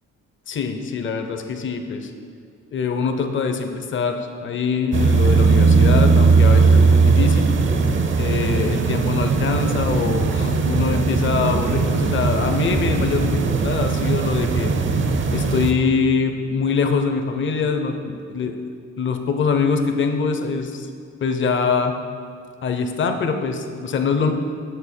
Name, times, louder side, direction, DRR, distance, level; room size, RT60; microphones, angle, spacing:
voice 1, 0.5-2.1 2.7-7.5 8.2-14.7 15.3-18.6 19.0-20.9 21.2-22.0 22.6-24.3, left 5 dB, 40° left, 6 dB, 0.6 m, -23 dB
sound 1, 4.9-15.7, right 4 dB, 40° right, 0.6 m, -18 dB
6.7 x 6.4 x 4.3 m, 2.2 s
cardioid pair, 90°, 30 cm